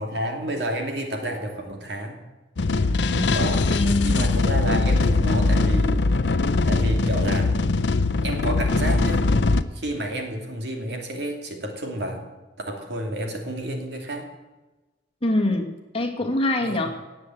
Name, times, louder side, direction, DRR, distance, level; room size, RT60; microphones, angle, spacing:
voice 1, 0.0-2.2 3.3-3.7 4.0-6.1 6.7-7.7 8.2-9.3 9.7-12.2 12.7-14.3 16.6-16.8, right 1 dB, 65° right, 2 dB, 2.6 m, -30 dB
sound 1, 2.6-9.6, left 3 dB, 70° left, 0.7 m, -21 dB
voice 2, 2.9-4.2 15.2-16.9, left 1 dB, 30° left, 3 dB, 1.8 m, -25 dB
18.0 x 7.6 x 7.8 m, 1.1 s
head